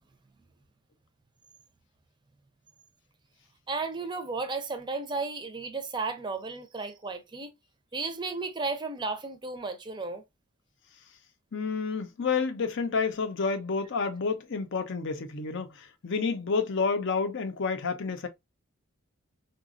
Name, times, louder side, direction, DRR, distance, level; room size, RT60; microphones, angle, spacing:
voice 1, 3.7-7.5 7.9-10.2, right 3 dB, 20° right, 0.5 m, -34 dB
voice 2, 11.5-18.3, left 5 dB, 60° left, 0.6 m, -29 dB
3.9 x 2.2 x 2.4 m
head